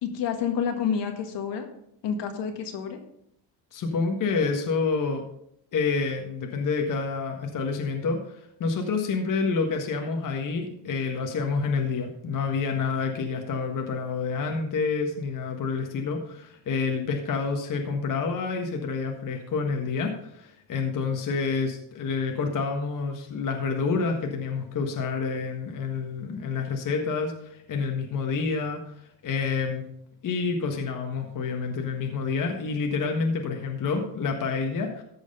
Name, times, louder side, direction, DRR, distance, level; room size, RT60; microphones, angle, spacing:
voice 1, 0.0-1.7 2.0-3.0, left 7 dB, 65° left, 4 dB, 1.8 m, -29 dB
voice 2, 3.7-5.2 5.7-28.9 29.2-29.9 30.2-35.0, left 4 dB, 45° left, 3 dB, 1.6 m, -28 dB
14.0 x 4.9 x 5.4 m, 0.75 s
cardioid pair, 110°, 45 cm